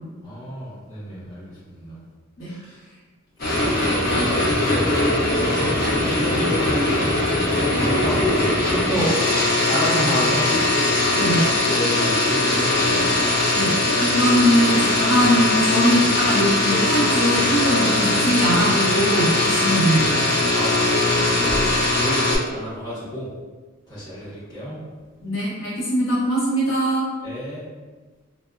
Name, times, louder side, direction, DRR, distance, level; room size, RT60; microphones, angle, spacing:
voice 1, 0.2-2.0 2.5-2.8 3.4-5.0 5.5-5.8 6.1-7.0 7.7-9.1 9.4-10.5 11.7-13.3 20.5-23.3 23.9-24.8 27.2-27.6, equal, 20° left, -10 dB, 1.1 m, -30 dB
sound 1, 3.4-22.4, left 2 dB, 50° left, 0.6 m, -20 dB
voice 2, 11.1-11.5 13.5-20.2 25.2-27.1, equal, 70° left, -7 dB, 0.9 m, -21 dB
4.0 x 2.1 x 2.4 m, 1.3 s
head